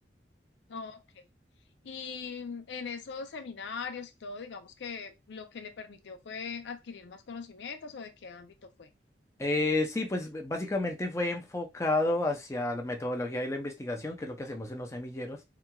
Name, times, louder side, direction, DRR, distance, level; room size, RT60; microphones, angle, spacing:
voice 1, 0.7-1.2 1.8-8.9, left 5 dB, 75° left, 0.5 m, -41 dB
voice 2, 9.4-15.4, left 2 dB, 15° left, 0.5 m, -31 dB
2.8 x 2.4 x 2.3 m
head